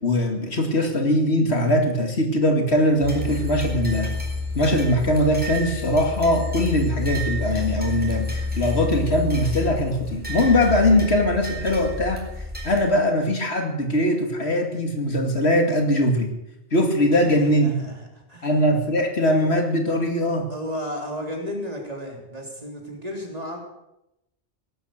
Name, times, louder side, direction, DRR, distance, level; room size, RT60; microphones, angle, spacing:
voice 1, 0.0-4.1 4.5-12.2 12.6-16.3 16.7-17.8 18.4-20.5, left 1 dB, 80° left, 4 dB, 2.6 m, -21 dB
sound 1, 3.0-12.8, left 2 dB, 10° right, 4.1 m, -29 dB
voice 2, 17.1-18.5 20.5-23.6, equal, 35° right, 1 dB, 3.6 m, -33 dB
17.5 x 12.0 x 6.7 m, 0.88 s
omnidirectional pair, 1.1 m